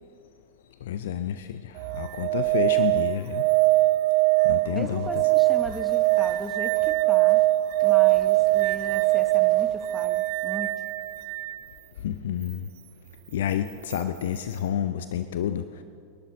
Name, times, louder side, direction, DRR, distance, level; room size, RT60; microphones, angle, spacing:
voice 1, 0.9-3.4 4.4-5.2 12.0-12.7 13.3-15.6, left 10 dB, 60° left, 11 dB, 0.6 m, -29 dB
sound 1, 1.8-11.6 13.9-14.0, right 20 dB, 45° right, 0.3 m, -22 dB
voice 2, 4.7-7.4 7.8-10.9, right 1 dB, ahead, 8 dB, 1.1 m, -38 dB
sound 2, 4.8-5.1 5.5-7.0 7.3-7.5 7.8-9.8, left 6 dB, 40° left, 1.5 m, -51 dB
27.5 x 11.5 x 4.0 m, 2.4 s
figure-of-eight pair, 90°, 0 cm